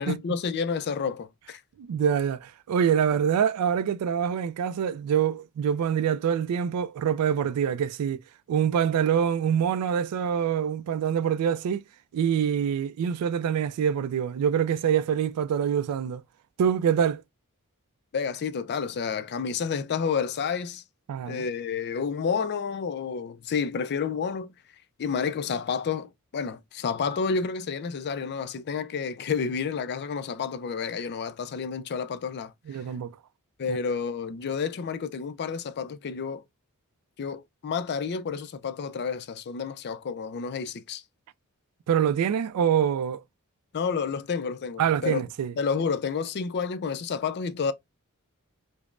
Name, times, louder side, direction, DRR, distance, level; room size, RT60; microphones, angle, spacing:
voice 1, 0.0-1.6 18.1-20.8 21.3-24.5 25.0-32.5 33.6-36.4 37.2-41.0 43.7-45.2 45.6-47.7, left 6 dB, 50° left, 0.4 m, -30 dB
voice 2, 1.8-8.2 8.5-11.8 12.1-16.2 16.6-17.2 21.1-21.5 32.7-33.1 33.7-33.8 41.9-43.2 44.8-45.5, right 8 dB, 85° right, 0.3 m, -25 dB
5.1 x 2.0 x 2.4 m
head